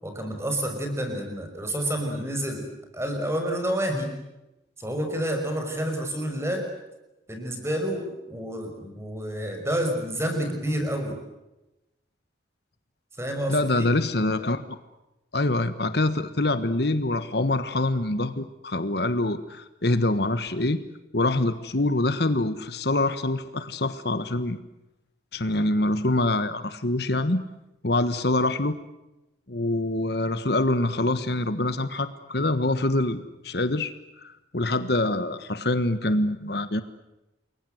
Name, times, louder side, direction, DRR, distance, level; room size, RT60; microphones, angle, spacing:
voice 1, 0.0-2.7 2.9-4.2 4.8-6.6 7.3-11.2 13.2-13.9, right 1 dB, 15° right, 4 dB, 5.8 m, -29 dB
voice 2, 13.5-14.6 15.3-20.8 21.1-24.6 25.3-27.4 27.8-28.8 29.5-33.9 34.2-36.8, left 2 dB, 60° left, 12 dB, 1.4 m, -25 dB
29.5 x 22.5 x 8.0 m, 0.97 s
head